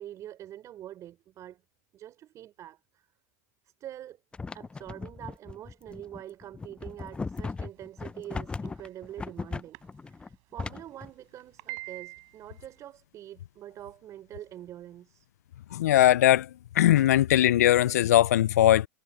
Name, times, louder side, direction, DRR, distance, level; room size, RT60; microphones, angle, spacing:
voice 1, 0.0-1.6 1.9-3.1 3.6-4.2 4.5-15.3, right 12 dB, 40° right, 5.3 m, -45 dB
sound 1, 4.3-11.1, left 4 dB, 10° left, 0.5 m, -37 dB
sound 2, 8.5-8.9 9.7-9.8 10.1-10.2 10.6-10.7 11.4-12.7, right 34 dB, 60° right, 6.4 m, -42 dB
voice 2, 15.7-16.5 16.8-18.9, left 13 dB, 85° left, 0.4 m, -20 dB
hypercardioid pair, 110°, 9 cm